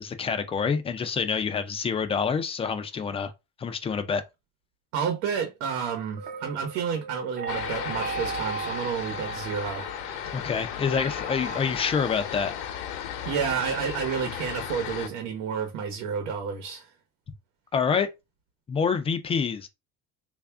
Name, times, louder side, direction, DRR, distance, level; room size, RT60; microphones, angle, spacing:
voice 1, 0.0-3.3 3.6-4.2 10.3-12.5 17.7-18.1 18.7-19.7, left 6 dB, 20° left, 0.4 m, -27 dB
voice 2, 4.9-9.9 13.2-16.9, right 7 dB, 75° right, 1.0 m, -30 dB
sound 1, 6.2-11.6, right 6 dB, 25° right, 0.6 m, -37 dB
sound 2, 7.5-15.1, left 9 dB, 75° left, 0.9 m, -35 dB
3.4 x 2.5 x 3.4 m
cardioid pair, 145°, 30 cm